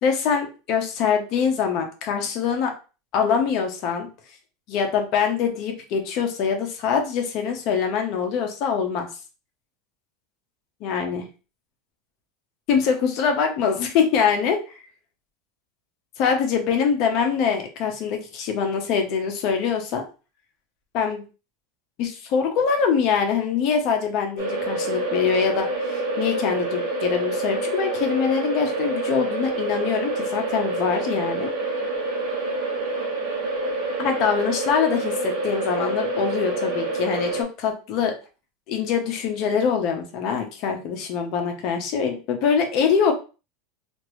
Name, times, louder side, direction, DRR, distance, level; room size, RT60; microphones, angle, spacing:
voice 1, 0.0-2.7 3.1-4.1 4.7-9.1 10.8-11.2 12.7-14.6 16.2-20.0 20.9-21.2 22.0-31.5 34.0-38.1 38.7-43.1, left 6 dB, 45° left, 4 dB, 0.8 m, -24 dB
sound 1, 24.4-37.4, right 2 dB, 55° right, 1.0 m, -27 dB
3.0 x 2.6 x 3.0 m, 0.34 s
supercardioid pair, 155°, 0 cm